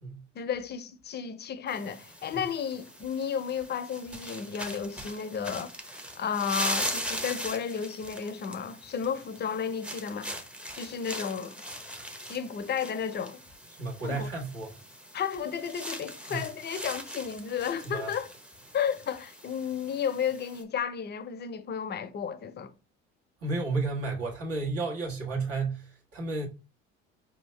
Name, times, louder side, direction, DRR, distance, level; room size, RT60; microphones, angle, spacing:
voice 1, 0.3-5.8 6.1-10.4 10.7-11.6 12.3-13.4 14.0-14.3 15.1-18.3 18.7-22.7, left 7 dB, 35° left, 0.6 m, -33 dB
sound 1, 1.7-20.6, equal, 5° right, 0.8 m, -40 dB
voice 2, 13.8-14.7 16.3-16.4 17.8-18.1 23.4-26.5, right 3 dB, 50° right, 1.4 m, -32 dB
4.7 x 2.7 x 3.2 m
supercardioid pair, 80°, 29 cm